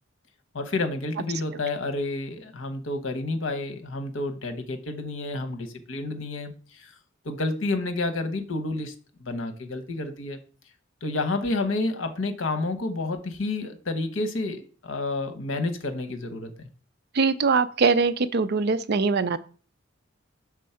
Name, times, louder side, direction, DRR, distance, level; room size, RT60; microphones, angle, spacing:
voice 1, 0.5-6.9 7.2-8.9 9.2-10.4 11.0-16.5, left 2 dB, 65° left, 7 dB, 1.0 m, -30 dB
voice 2, 17.1-19.4, right 4 dB, 55° right, 12 dB, 0.5 m, -22 dB
6.2 x 3.7 x 5.7 m, 0.38 s
head